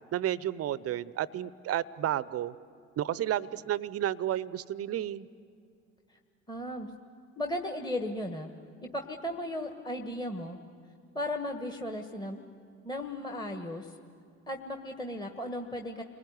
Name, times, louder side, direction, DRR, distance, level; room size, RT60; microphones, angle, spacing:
voice 1, 0.0-2.5 3.0-5.3, right 11 dB, 40° right, 19 dB, 0.8 m, -32 dB
voice 2, 6.5-7.0 7.4-8.5 8.8-10.6 11.1-12.4 12.8-13.9 14.5-16.0, left 1 dB, 10° left, 4 dB, 1.5 m, -36 dB
30.0 x 20.5 x 9.6 m, 2.3 s
figure-of-eight pair, 60°, 37 cm